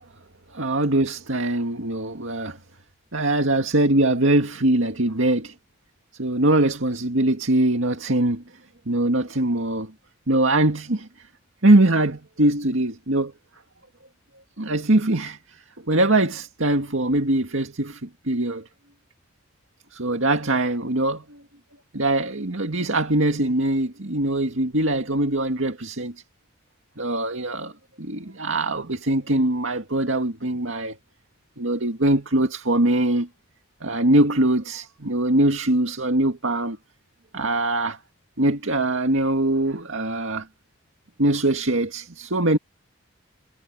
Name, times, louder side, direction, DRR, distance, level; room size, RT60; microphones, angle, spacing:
voice 1, 0.5-2.6 3.1-5.5 6.2-8.4 8.9-9.9 10.3-11.1 11.6-13.3 14.6-15.6 15.9-18.6 19.9-21.4 21.9-26.1 27.0-27.7 28.0-31.0 31.6-33.3 33.8-36.8 37.3-38.0 38.4-40.5 41.2-42.6, right 1 dB, 70° right, 2.1 m, -22 dB
head